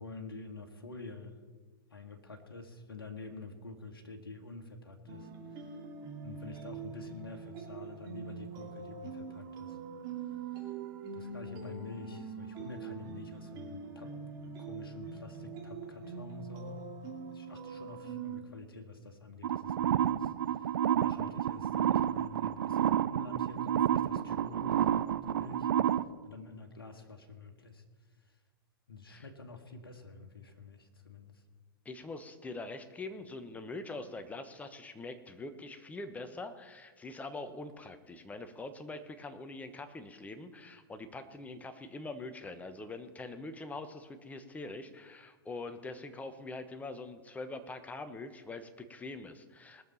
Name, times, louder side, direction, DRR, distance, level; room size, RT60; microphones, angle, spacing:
voice 1, 0.0-1.4 1.9-5.3 5.6-5.8 6.2-9.8 10.5-10.7 11.1-14.2 14.6-16.9 17.3-25.0 25.3-25.7 26.2-27.8 28.2-28.4 28.9-31.4, left 3 dB, 75° left, 4 dB, 1.5 m, -48 dB
sound 1, 5.1-18.4, right 5 dB, 35° right, 2.5 m, -43 dB
sound 2, 19.4-26.0, right 10 dB, 65° right, 0.5 m, -30 dB
voice 2, 31.8-49.9, left 2 dB, 10° left, 9 dB, 1.1 m, -44 dB
20.0 x 6.8 x 5.7 m, 1.5 s
figure-of-eight pair, 100°, 12 cm